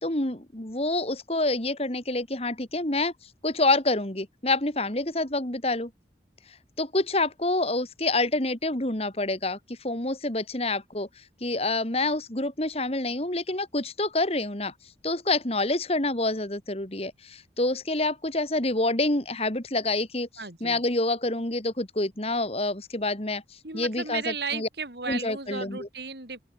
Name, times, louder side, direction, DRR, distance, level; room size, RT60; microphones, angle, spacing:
voice 1, 0.0-3.1 3.4-5.9 6.8-11.1 11.4-14.7 15.0-20.3 20.6-23.4 23.7-24.7 25.1-25.9, left 2 dB, 35° left, 2.5 m, -27 dB
voice 2, 20.4-20.8 23.6-26.4, right 5 dB, 65° right, 4.2 m, -34 dB
open air
head